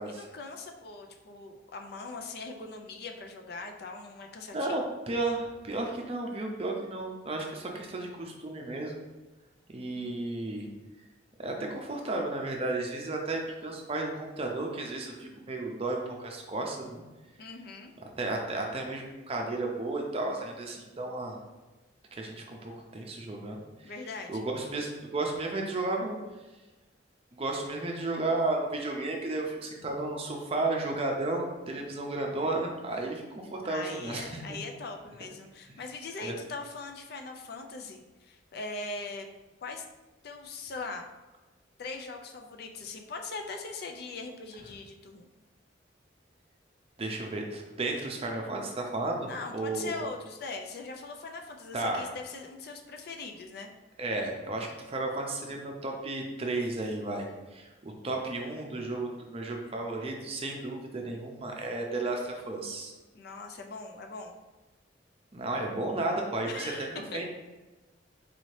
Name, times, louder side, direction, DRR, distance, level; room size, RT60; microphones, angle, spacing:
voice 1, 0.0-4.9 9.9-10.2 17.4-17.9 23.8-24.4 33.7-39.3 39.6-39.8 40.2-41.1 41.8-45.3 49.3-53.7 63.1-64.4 66.4-67.2, left 3 dB, 55° left, 4 dB, 0.4 m, -41 dB
voice 2, 4.5-9.0 9.7-10.7 11.4-17.0 18.2-21.4 22.1-23.9 24.3-26.2 27.3-34.6 36.2-36.4 47.0-49.9 51.7-52.1 54.0-62.9 65.3-67.3, right 2 dB, 30° right, 1 dB, 0.5 m, -33 dB
4.1 x 2.7 x 3.2 m, 1.2 s
head